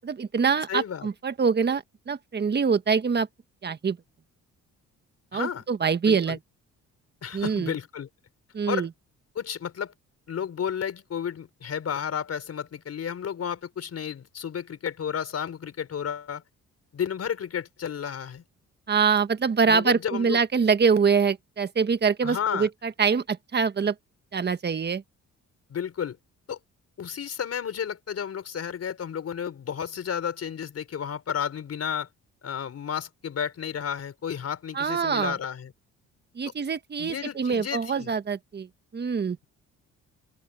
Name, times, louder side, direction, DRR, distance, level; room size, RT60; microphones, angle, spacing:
voice 1, 0.0-3.3 3.6-4.0 5.3-6.4 7.3-7.7 8.5-8.9 18.9-23.9 24.3-25.0 34.7-35.4 36.3-38.7 38.9-39.4, right 5 dB, 35° right, 1.5 m, -24 dB
voice 2, 0.7-1.1 5.3-5.6 6.0-6.4 7.2-8.1 8.7-8.9 9.3-9.9 10.3-16.4 16.9-18.4 19.7-20.4 22.2-22.7 25.7-26.2 26.5-26.6 27.0-32.1 32.4-35.7 37.0-38.1, left 8 dB, 55° left, 5.1 m, -32 dB
open air
cardioid pair, 90°, 30 cm